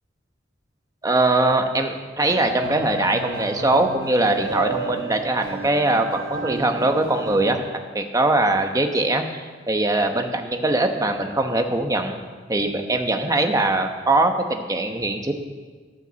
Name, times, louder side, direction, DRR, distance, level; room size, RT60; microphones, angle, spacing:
voice 1, 1.0-7.6 7.9-12.2 12.5-15.3, right 2 dB, 15° right, 5 dB, 1.0 m, -21 dB
sound 1, 2.3-7.5, right 3 dB, 70° right, 1.4 m, -32 dB
13.5 x 9.2 x 7.0 m, 1.4 s
head